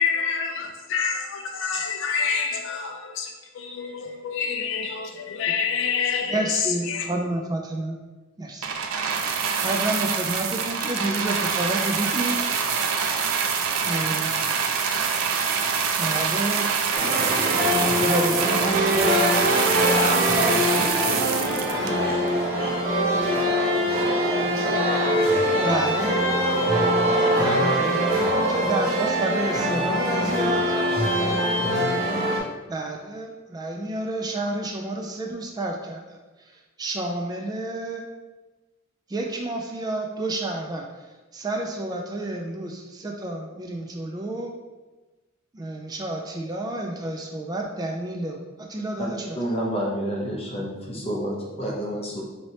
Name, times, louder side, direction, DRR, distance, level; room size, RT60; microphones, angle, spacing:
voice 1, 0.0-7.1, left 6 dB, 65° left, 0.4 m, -27 dB
voice 2, 6.3-8.0 8.4-8.7 9.6-12.4 13.8-14.4 16.0-16.7 17.9-19.3 25.6-26.2 27.2-30.8 32.7-36.2 36.8-38.0 39.1-40.8 41.3-44.5 45.5-49.4, right 1 dB, 20° right, 0.3 m, -29 dB
sound 1, 8.6-22.3 23.1-23.2, right 6 dB, 85° right, 0.4 m, -25 dB
sound 2, 16.9-32.4, equal, 45° right, 1.3 m, -23 dB
voice 3, 49.3-52.2, equal, 30° left, 0.9 m, -29 dB
3.1 x 2.8 x 4.1 m
head